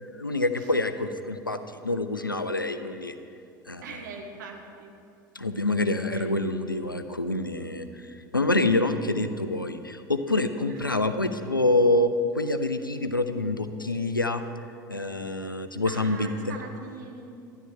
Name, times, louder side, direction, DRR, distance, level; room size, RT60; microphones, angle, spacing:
voice 1, 0.0-3.2 3.7-3.8 5.3-14.4 14.9-16.3, left 2 dB, 90° left, 9 dB, 0.5 m, -26 dB
voice 2, 3.8-4.9 6.1-6.4 10.7-10.9 15.4-17.2, right 4 dB, 65° right, 2 dB, 1.4 m, -42 dB
13.0 x 10.5 x 3.7 m, 2.4 s
figure-of-eight pair, 70°, 11 cm